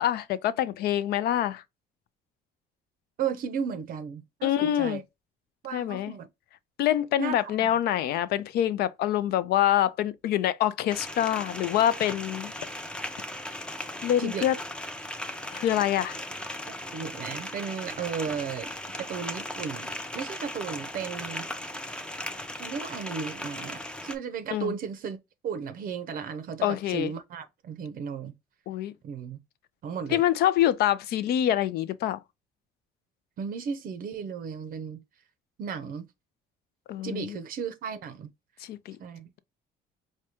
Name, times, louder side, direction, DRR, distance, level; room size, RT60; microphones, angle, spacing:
voice 1, 0.0-1.6 4.4-5.0 5.7-6.1 6.8-12.5 14.0-14.6 15.5-16.2 24.5-24.7 26.6-27.1 28.7-28.9 30.1-32.2 36.9-37.4 38.7-39.0, left 12 dB, 70° left, 0.5 m, -25 dB
voice 2, 3.2-5.0 5.6-6.3 7.2-7.7 14.2-14.5 16.9-21.5 22.6-25.2 25.4-28.3 29.0-29.4 29.8-30.2 33.4-35.0 35.6-36.1 37.0-38.3 39.0-39.3, right 6 dB, 55° right, 0.5 m, -35 dB
sound 1, 10.9-24.2, left 1 dB, 5° left, 0.5 m, -37 dB
4.8 x 2.2 x 2.8 m
cardioid pair, 110°, 17 cm